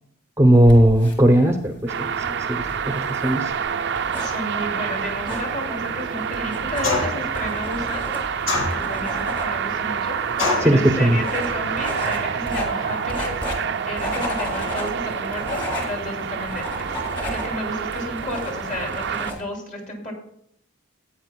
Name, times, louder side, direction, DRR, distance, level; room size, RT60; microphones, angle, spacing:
voice 1, 0.4-2.1 2.5-3.5 10.6-11.2, right 1 dB, 15° right, 5 dB, 0.7 m, -17 dB
sound 1, 0.5-19.4, equal, 25° left, 2.5 m, -34 dB
sound 2, 1.9-19.3, right 7 dB, 55° right, 0.5 m, -28 dB
voice 2, 4.2-8.1 8.7-13.3 13.6-16.9 17.2-20.1, left 1 dB, 40° left, 1 dB, 2.8 m, -32 dB
sound 3, 6.8-7.3 8.5-9.1 10.4-10.8, left 3 dB, 75° left, 2.4 m, -24 dB
15.0 x 8.9 x 2.3 m, 0.70 s
head